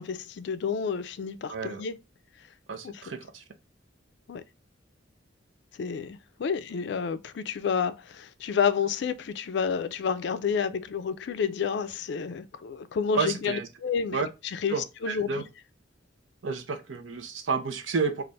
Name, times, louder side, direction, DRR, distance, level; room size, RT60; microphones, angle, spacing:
voice 1, 0.0-2.0 2.8-3.0 4.3-4.4 5.8-15.3, left 6 dB, 65° left, 0.4 m, -30 dB
voice 2, 1.5-1.8 2.7-3.4 13.1-13.7 14.1-14.3 14.7-15.4 16.4-18.2, right 5 dB, 85° right, 0.7 m, -30 dB
3.3 x 2.5 x 3.8 m
head